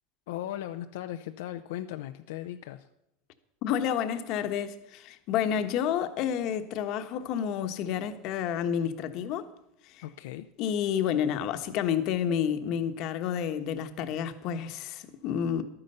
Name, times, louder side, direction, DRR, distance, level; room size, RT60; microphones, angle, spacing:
voice 1, 0.3-2.9 10.0-10.5, left 12 dB, 85° left, 0.6 m, -37 dB
voice 2, 3.6-9.5 9.9-10.0 10.6-15.6, left 9 dB, 55° left, 1.2 m, -30 dB
12.0 x 9.7 x 6.7 m
supercardioid pair, 130°, 0 cm